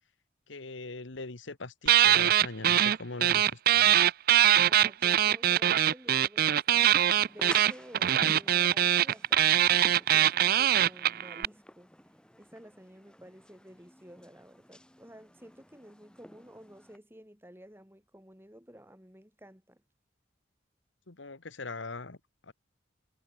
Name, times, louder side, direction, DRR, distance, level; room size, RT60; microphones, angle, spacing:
voice 1, 0.5-3.9 21.1-22.2 22.5-22.6, left 3 dB, 75° left, 1.5 m, -41 dB
sound 1, 1.9-3.0 3.2-11.5, right 11 dB, 50° right, 0.4 m, -23 dB
voice 2, 4.6-11.9 12.4-19.8, equal, 10° right, 6.4 m, -52 dB
sound 2, 6.9-17.0, equal, 5° left, 4.8 m, -50 dB
head